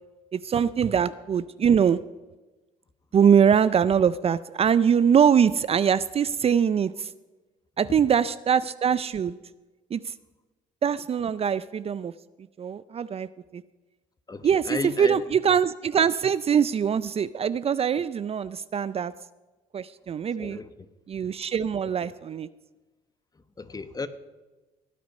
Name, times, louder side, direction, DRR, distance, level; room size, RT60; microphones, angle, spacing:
voice 1, 0.3-2.0 3.1-7.1 7.8-9.4 9.9-10.1 10.8-12.1 12.6-13.6 14.4-19.1 19.7-20.6 21.1-22.5, right 7 dB, 40° right, 0.5 m, -23 dB
voice 2, 14.3-15.2 20.4-20.7 22.0-22.1 23.6-24.1, left 3 dB, 25° left, 1.1 m, -33 dB
17.0 x 9.3 x 5.4 m
supercardioid pair, 65°, 16 cm